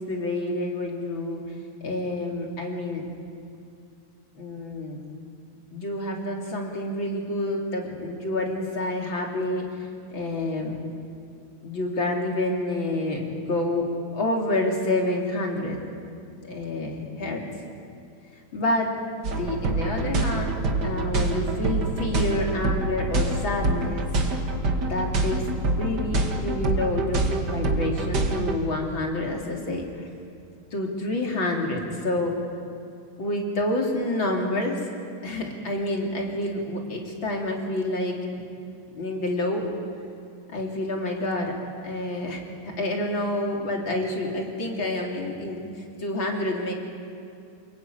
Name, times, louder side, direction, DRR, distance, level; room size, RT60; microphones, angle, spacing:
voice 1, 0.0-1.4 1.8-3.1 4.4-5.0 5.7-9.7 10.1-10.8 11.6-15.8 16.4-17.5 18.5-20.6 20.8-24.1 24.8-30.1 30.7-32.4 33.2-34.8 35.2-38.3 38.9-39.7 40.5-41.6 41.8-46.7, left 1 dB, 30° left, 0 dB, 3.6 m, -28 dB
sound 1, 19.2-28.5, right 2 dB, 35° right, 1.7 m, -26 dB
29.0 x 21.0 x 9.4 m, 2.5 s
omnidirectional pair, 4.5 m